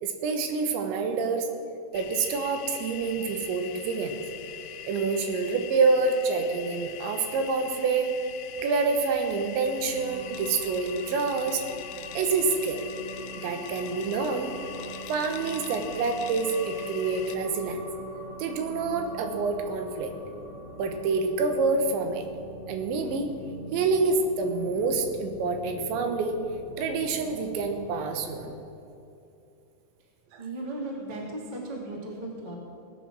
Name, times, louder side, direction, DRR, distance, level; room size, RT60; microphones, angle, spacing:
voice 1, 0.0-1.5 1.9-4.2 4.8-8.2 8.6-11.7 12.1-12.8 13.4-14.5 15.1-17.9 18.4-20.1 20.8-22.3 22.7-23.3 23.7-26.4 26.8-28.5 30.3-30.4, right 4 dB, 80° right, 5 dB, 3.4 m, -27 dB
sound 1, 1.9-17.4, left 10 dB, 85° left, 3.2 m, -42 dB
sound 2, 9.8-28.6, equal, 30° left, 3.5 m, -43 dB
voice 2, 30.4-32.6, right 2 dB, 20° right, -1 dB, 1.2 m, -36 dB
17.5 x 10.0 x 6.1 m, 2.7 s
omnidirectional pair, 5.3 m